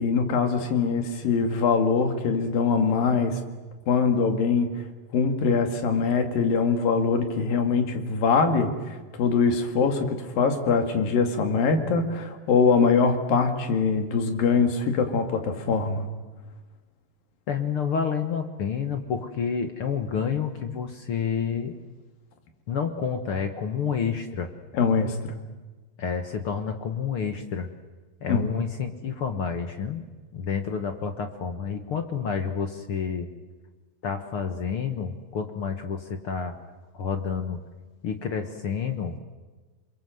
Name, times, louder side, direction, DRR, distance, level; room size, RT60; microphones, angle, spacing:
voice 1, 0.0-3.4 3.9-4.8 5.1-16.1 24.7-25.2 28.3-28.5, left 5 dB, 85° left, 6 dB, 4.0 m, -23 dB
voice 2, 17.5-21.8 22.7-24.5 26.0-27.7 28.2-30.0 30.3-33.3 34.0-36.6 36.9-37.6 38.0-39.2, left 6 dB, 55° left, 7 dB, 1.7 m, -29 dB
28.0 x 23.0 x 7.8 m, 1.3 s
omnidirectional pair, 3.9 m